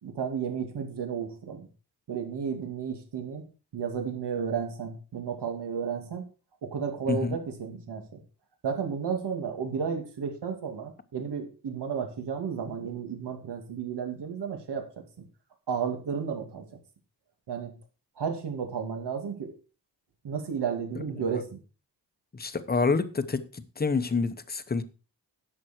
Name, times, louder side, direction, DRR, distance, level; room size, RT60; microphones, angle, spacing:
voice 1, 0.0-1.7 2.1-3.5 3.7-6.3 6.6-8.2 8.6-14.8 15.7-16.6 17.5-17.7 18.2-19.5 20.2-21.6, right 6 dB, 85° right, 2.4 m, -32 dB
voice 2, 7.1-7.4 21.3-21.4 22.3-24.8, left 4 dB, 25° left, 0.8 m, -28 dB
11.0 x 7.7 x 4.4 m
wide cardioid pair, 165°, 40 cm